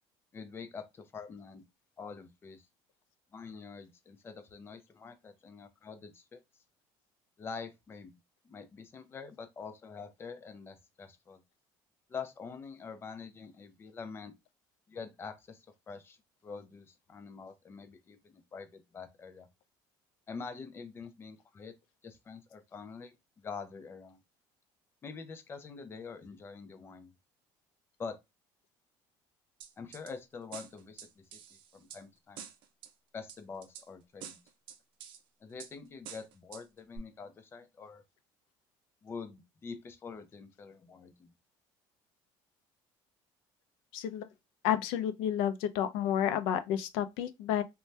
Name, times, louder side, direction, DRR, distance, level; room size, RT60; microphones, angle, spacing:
voice 1, 0.3-1.6 2.0-2.7 3.3-6.4 7.4-8.2 8.4-11.4 12.1-14.3 14.9-16.2 16.4-19.5 20.3-21.7 22.0-24.2 25.0-27.1 28.0-28.2 29.8-32.5 33.1-34.4 35.4-38.0 39.0-41.3, left 5 dB, 25° left, 0.5 m, -45 dB
sound 1, 29.6-30.1 30.5-32.0 32.4-32.9 33.3-33.9 34.2-35.2 35.6-35.7 36.1-36.6 37.0-37.1, right 9 dB, 65° right, 0.5 m, -47 dB
voice 2, 43.9-44.3 44.6-47.6, left 10 dB, 85° left, 0.4 m, -30 dB
2.7 x 2.2 x 3.2 m
cardioid pair, 120°, 9 cm